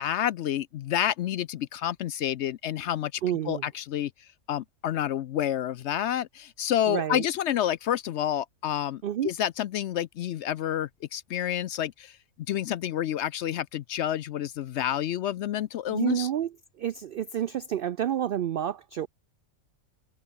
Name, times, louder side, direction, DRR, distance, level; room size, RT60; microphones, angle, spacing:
voice 1, 0.0-4.1 4.5-12.2 12.5-16.3, left 11 dB, 65° left, 0.7 m, -29 dB
voice 2, 3.2-3.6 6.9-7.2 9.0-9.3 15.9-16.5 16.8-19.1, right 10 dB, 75° right, 0.5 m, -29 dB
omnidirectional pair, 1.5 m